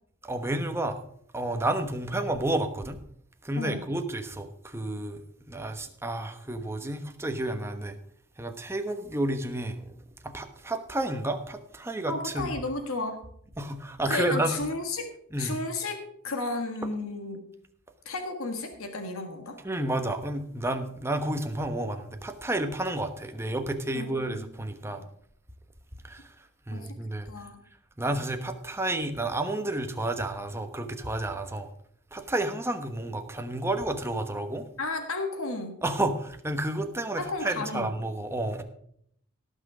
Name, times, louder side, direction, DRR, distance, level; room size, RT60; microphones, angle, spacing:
voice 1, 0.2-1.0 1.3-3.0 3.4-5.2 5.5-8.0 8.4-9.8 10.2-12.5 13.6-14.6 15.3-15.6 19.6-25.0 26.0-26.3 26.7-27.3 28.0-31.7 32.1-34.7 35.8-38.6, right 1 dB, 10° right, 6 dB, 1.1 m, -31 dB
voice 2, 12.1-13.2 14.1-15.1 15.4-17.4 18.0-19.6 23.9-24.5 26.7-27.0 27.2-27.6 34.8-35.8 37.2-37.9, left 3 dB, 80° left, 5 dB, 1.6 m, -33 dB
17.5 x 6.3 x 4.9 m, 0.66 s
head